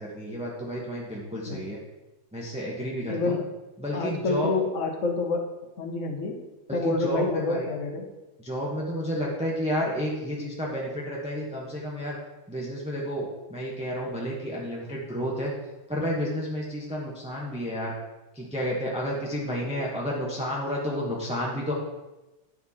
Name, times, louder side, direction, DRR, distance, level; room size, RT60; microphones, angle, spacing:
voice 1, 0.0-1.8 2.3-3.4 3.8-4.5 6.7-7.7 8.4-12.2 12.5-15.5 15.9-17.9 18.3-21.7, equal, 5° right, -3 dB, 0.5 m, -31 dB
voice 2, 3.0-3.4 3.9-6.4 6.7-8.1, left 3 dB, 45° left, 2 dB, 1.1 m, -28 dB
11.5 x 4.3 x 4.2 m, 1.1 s
omnidirectional pair, 2.3 m